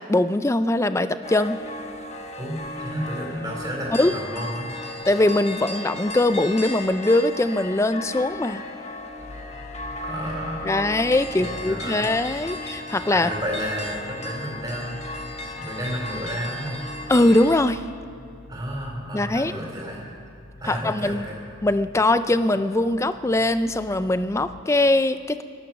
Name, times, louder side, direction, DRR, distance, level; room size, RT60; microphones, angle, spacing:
voice 1, 0.0-1.6 3.9-4.2 5.1-8.6 10.6-13.3 17.1-17.8 19.1-19.5 20.7-21.3 21.6-25.4, left 2 dB, 15° left, 12 dB, 0.4 m, -21 dB
sound 1, 1.2-17.6, left 1 dB, 30° left, 1.1 m, -35 dB
voice 2, 2.4-4.7 10.0-10.8 11.3-12.1 13.1-15.0 15.6-16.9 18.5-20.0 20.6-21.4, equal, 20° right, -3 dB, 4.2 m, -31 dB
sound 2, 9.2-24.6, left 1 dB, 50° left, 1.5 m, -46 dB
18.5 x 12.5 x 6.1 m, 2.6 s
head